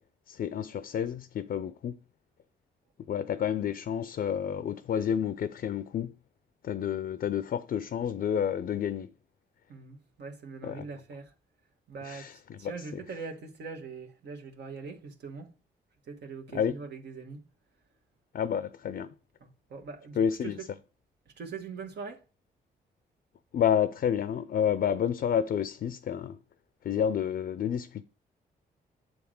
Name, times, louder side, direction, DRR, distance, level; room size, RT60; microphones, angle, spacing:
voice 1, 0.3-2.0 3.1-6.1 6.6-9.1 10.6-10.9 12.0-13.0 16.5-16.7 18.3-19.1 20.2-20.6 23.5-26.4 26.8-28.0, left 8 dB, 60° left, 0.5 m, -30 dB
voice 2, 9.7-11.3 11.9-12.3 12.6-15.5 16.1-17.4 19.4-20.5 21.4-22.2, right 4 dB, 70° right, 1.5 m, -42 dB
7.7 x 3.6 x 6.3 m
supercardioid pair, 60°, 18 cm